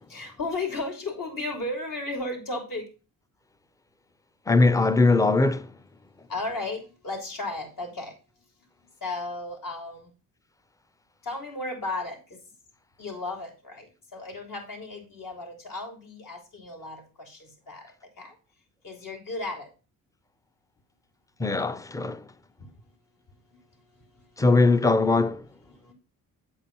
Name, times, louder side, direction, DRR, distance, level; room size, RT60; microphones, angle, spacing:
voice 1, 0.1-2.8 6.3-8.1 9.0-10.1 11.2-12.4 13.0-17.8 18.2-18.3 18.8-19.7 22.6-22.7 25.6-25.9, left 2 dB, 65° left, 3.1 m, -34 dB
voice 2, 4.5-5.6 21.4-22.2 24.4-25.4, left 3 dB, 10° left, 0.5 m, -20 dB
8.0 x 4.5 x 5.2 m
cardioid pair, 100°, 35 cm